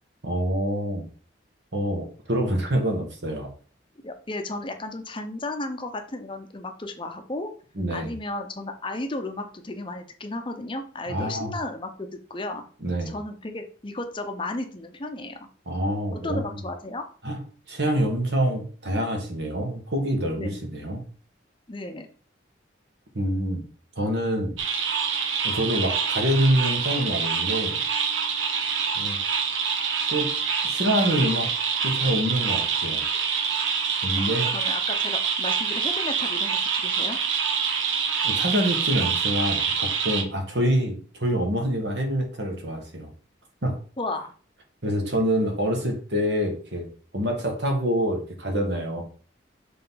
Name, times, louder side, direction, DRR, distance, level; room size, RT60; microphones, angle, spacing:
voice 1, 0.2-1.0 1.7-3.5 7.7-8.1 11.1-11.5 12.8-13.1 15.6-16.6 17.2-17.4 17.7-21.0 23.1-23.6 23.9-24.6 25.4-27.8 28.9-29.2 30.1-30.3 30.6-31.5 31.8-33.0 34.0-34.5 38.2-43.1 43.6-43.7 44.8-46.9 47.1-49.0, equal, 65° right, 2 dB, 1.7 m, -26 dB
voice 2, 4.0-7.5 7.9-12.7 13.1-15.4 16.1-17.0 20.4-20.6 21.7-22.1 34.2-37.2 44.0-44.3, left 2 dB, 25° left, 6 dB, 0.6 m, -34 dB
sound 1, 24.6-40.2, right 6 dB, 85° right, 1.0 m, -26 dB
6.7 x 3.8 x 3.9 m, 0.41 s
head